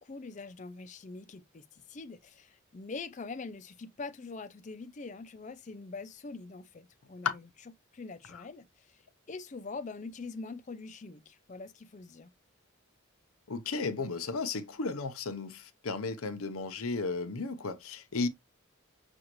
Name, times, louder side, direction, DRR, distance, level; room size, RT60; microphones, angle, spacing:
voice 1, 0.0-7.5 7.9-8.7 9.3-12.3, left 4 dB, 35° left, 0.4 m, -43 dB
voice 2, 13.5-18.3, left 4 dB, 90° left, 0.8 m, -34 dB
6.2 x 2.4 x 3.0 m
head